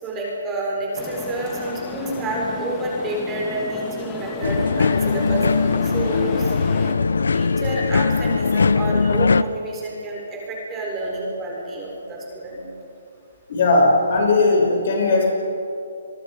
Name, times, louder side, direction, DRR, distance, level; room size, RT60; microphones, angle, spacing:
voice 1, 0.0-5.4 5.8-6.5 7.3-12.6, right 2 dB, 15° right, -2 dB, 4.2 m, -29 dB
sound 1, 0.9-6.9, left 5 dB, 15° left, 1.8 m, -33 dB
sound 2, 4.4-9.4, left 4 dB, 85° left, 0.7 m, -20 dB
voice 2, 13.5-15.3, left 3 dB, 50° left, 0 dB, 6.6 m, -17 dB
27.5 x 22.5 x 5.1 m, 2.7 s
hypercardioid pair, 165°, 0 cm